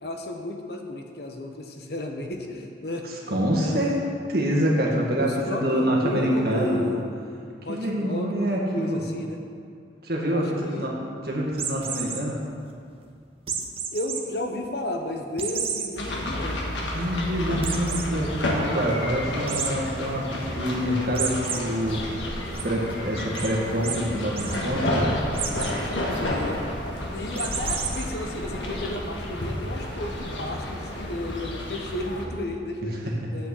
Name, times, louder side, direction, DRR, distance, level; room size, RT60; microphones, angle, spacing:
voice 1, 0.0-4.0 5.2-7.0 7.6-9.4 10.3-10.9 13.9-16.7 26.2-26.6 27.1-33.0 33.3-33.5, left 1 dB, 60° left, 3 dB, 1.0 m, -33 dB
voice 2, 3.0-4.0 4.3-6.8 7.7-9.0 10.0-11.0 11.2-12.4 16.9-22.2 22.6-25.2 33.1-33.2, equal, 55° right, -2 dB, 1.7 m, -26 dB
sound 1, 11.5-12.2 13.5-14.2 14.6-14.7 15.4-15.9 16.4-16.5 16.7-16.8 17.6-18.1 19.5-19.7 21.1-21.6 22.0-22.6 23.3-23.5 23.8-24.0 24.3-24.6 25.3-25.7 27.3-28.0, right 7 dB, 30° right, 0.8 m, -30 dB
sound 2, 16.0-32.3, left 1 dB, 90° left, 1.5 m, -31 dB
7.9 x 6.1 x 8.1 m, 2.3 s
head